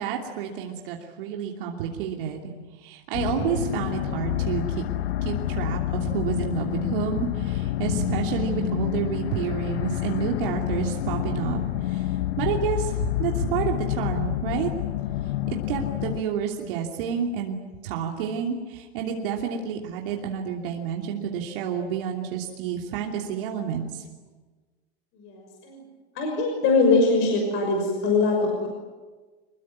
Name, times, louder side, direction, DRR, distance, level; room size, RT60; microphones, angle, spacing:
voice 1, 0.0-2.4 2.8-4.8 5.2-14.7 15.5-17.6 17.8-24.0, right 8 dB, 55° right, 1 dB, 3.0 m, -29 dB
sound 1, 3.1-16.2, left 13 dB, 75° left, 1.3 m, -28 dB
voice 2, 25.2-25.8 26.2-28.7, left 3 dB, 35° left, 1 dB, 6.1 m, -22 dB
26.0 x 21.5 x 9.7 m, 1.4 s
supercardioid pair, 165°, 32 cm